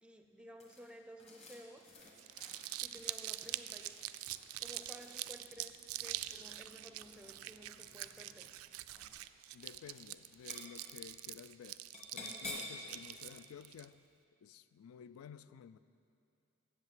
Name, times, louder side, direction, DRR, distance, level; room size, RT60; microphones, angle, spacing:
voice 1, 0.0-2.0 2.8-4.0 4.6-8.5 15.5-15.6, equal, 5° right, 5 dB, 0.4 m, -55 dB
sound 1, 0.6-5.6 6.8-7.5 8.2-8.6 8.9-9.3 9.6-10.0 10.3-10.9 11.9-12.8, left 2 dB, 30° left, 1.5 m, -51 dB
Crumpling crinkling, 2.1-13.8, right 15 dB, 85° right, 0.3 m, -44 dB
sound 2, 3.6-9.2, left 1 dB, 60° left, 2.2 m, -68 dB
voice 2, 9.5-11.8 12.1-14.0 14.4-15.8, left 8 dB, 85° left, 14 dB, 0.3 m, -53 dB
8.2 x 7.4 x 7.4 m, 2.6 s
head